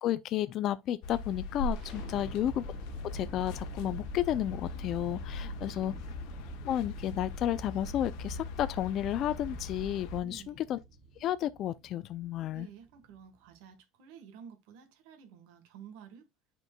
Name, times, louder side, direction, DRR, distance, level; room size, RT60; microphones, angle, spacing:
voice 1, 0.0-2.6 3.1-5.9 6.6-10.8 11.2-12.7, left 12 dB, 35° left, 0.3 m, -32 dB
sound 1, 1.0-10.2, left 2 dB, 55° left, 1.0 m, -40 dB
sound 2, 1.7-13.6, right 3 dB, 40° right, 3.5 m, -48 dB
voice 2, 2.1-2.4 5.4-6.0 10.2-10.6 12.5-16.3, right 7 dB, 65° right, 1.3 m, -52 dB
10.5 x 4.4 x 2.2 m
cardioid pair, 175°, 0 cm